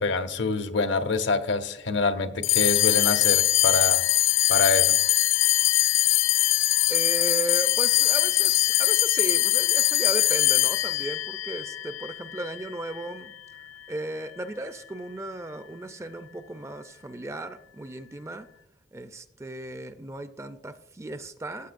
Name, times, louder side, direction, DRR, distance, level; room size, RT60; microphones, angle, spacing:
voice 1, 0.0-4.0 4.5-5.0, left 3 dB, 70° left, 0.8 m, -26 dB
sound 1, 2.4-13.1, left 15 dB, 85° left, 0.3 m, -22 dB
voice 2, 6.9-13.3 13.9-18.5 18.9-21.7, right 1 dB, 15° right, 0.4 m, -35 dB
15.0 x 8.0 x 2.5 m
head